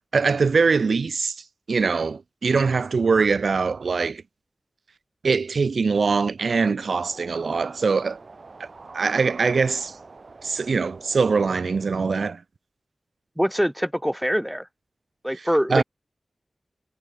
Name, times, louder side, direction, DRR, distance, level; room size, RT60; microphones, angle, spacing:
voice 1, 0.1-4.2 5.2-8.2 8.6-8.7 8.9-10.0 10.4-12.4 15.7-15.8, right 4 dB, 80° right, 0.4 m, -22 dB
sound 1, 6.8-12.2, right 3 dB, 60° right, 6.1 m, -45 dB
voice 2, 13.4-14.7 15.2-15.8, equal, 5° right, 2.0 m, -23 dB
cardioid pair, 50°, 0 cm